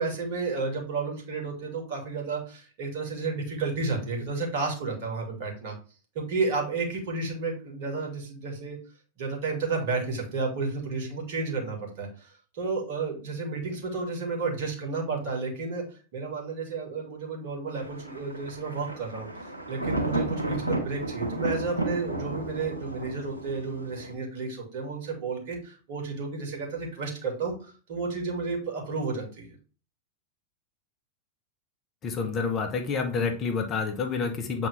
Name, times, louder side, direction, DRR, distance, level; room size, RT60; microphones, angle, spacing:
voice 1, 0.0-5.7 6.1-8.8 9.2-29.5, right 4 dB, 50° right, 1 dB, 2.5 m, -32 dB
Thunder, 17.7-24.1, right 2 dB, 80° right, 1.7 m, -33 dB
voice 2, 32.0-34.7, left 5 dB, 30° left, 5 dB, 1.2 m, -28 dB
7.8 x 3.9 x 3.5 m, 0.38 s
figure-of-eight pair, 90°, 0 cm